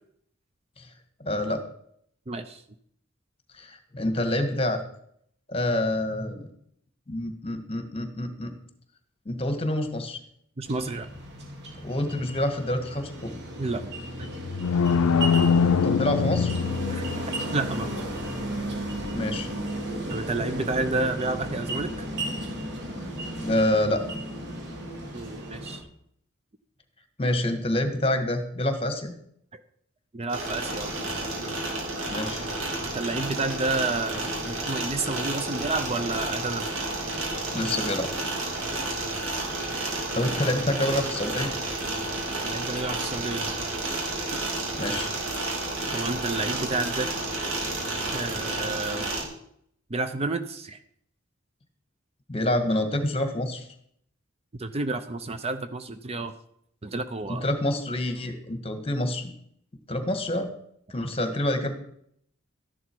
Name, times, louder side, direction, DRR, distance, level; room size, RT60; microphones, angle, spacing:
voice 1, 1.2-1.6 3.6-4.8 5.5-6.5 7.1-8.5 9.2-10.2 11.8-13.4 15.8-16.5 19.1-19.5 23.4-24.0 27.2-29.1 32.1-32.5 37.5-38.1 40.1-41.5 44.8-45.1 52.3-53.6 57.3-59.3 59.9-60.5 60.9-61.8, left 1 dB, 25° left, 7 dB, 1.7 m, -27 dB
voice 2, 2.3-2.6 10.6-11.1 13.6-13.9 16.9-17.0 17.5-18.0 20.1-21.9 25.1-25.9 29.5-29.6 30.1-30.9 32.9-36.7 38.7-38.8 42.4-43.6 44.3-44.4 45.9-47.1 48.1-49.1 49.9-50.8 54.6-56.3 56.8-57.4, right 3 dB, 30° right, 10 dB, 0.6 m, -30 dB
sound 1, 10.6-25.8, right 1 dB, 55° right, 2.8 m, -34 dB
sound 2, 14.2-17.5, left 6 dB, 90° left, 0.5 m, -23 dB
sound 3, 30.3-49.2, right 2 dB, 80° right, 3.6 m, -31 dB
13.0 x 11.0 x 4.6 m, 0.69 s
head